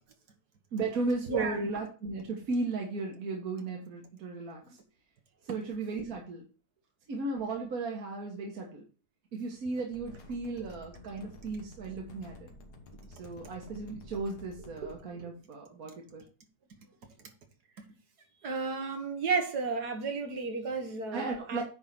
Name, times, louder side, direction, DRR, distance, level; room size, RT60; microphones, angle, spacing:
voice 1, 0.7-4.8 5.4-6.4 7.1-8.8 9.3-12.5 13.1-16.2 21.1-21.6, right 3 dB, 65° right, 1.8 m, -35 dB
voice 2, 1.3-1.6 18.4-21.6, right 4 dB, 80° right, 2.0 m, -32 dB
sound 1, 9.9-15.0, left 1 dB, 85° left, 1.8 m, -51 dB
9.5 x 3.6 x 5.8 m
omnidirectional pair, 1.7 m